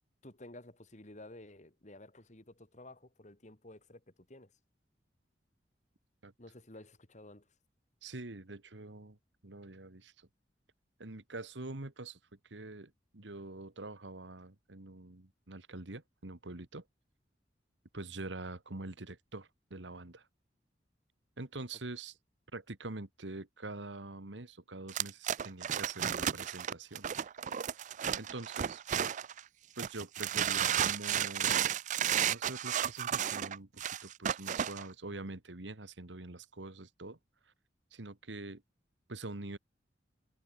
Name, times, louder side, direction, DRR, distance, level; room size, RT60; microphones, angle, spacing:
voice 1, 0.2-4.5 6.4-7.5, left 1 dB, 40° left, 2.8 m, -53 dB
voice 2, 8.0-9.2 9.4-10.3 11.0-12.2 12.5-16.8 17.9-20.3 21.4-22.1 22.5-27.1 28.2-28.8 29.8-31.6 32.3-37.2 37.9-38.6 39.1-39.6, right 2 dB, 85° right, 1.8 m, -45 dB
sound 1, 24.9-29.4 29.8-34.8, right 9 dB, 45° right, 0.4 m, -33 dB
head